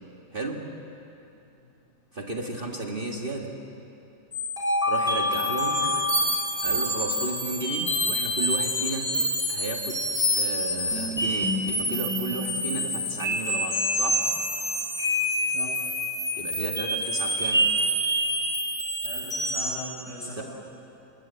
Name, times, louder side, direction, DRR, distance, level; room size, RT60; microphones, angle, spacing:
voice 1, 0.3-0.8 2.1-3.6 4.9-5.9 6.6-9.2 9.5-10.1 10.4-14.3 16.4-17.7 20.3-20.4, right 2 dB, 30° right, 1 dB, 1.8 m, -33 dB
sound 1, 4.3-19.8, equal, ahead, 3.7 m, -27 dB
voice 2, 19.0-20.4, left 2 dB, 75° left, -3 dB, 7.6 m, -38 dB
27.5 x 20.5 x 8.2 m, 2.8 s
omnidirectional pair, 1.9 m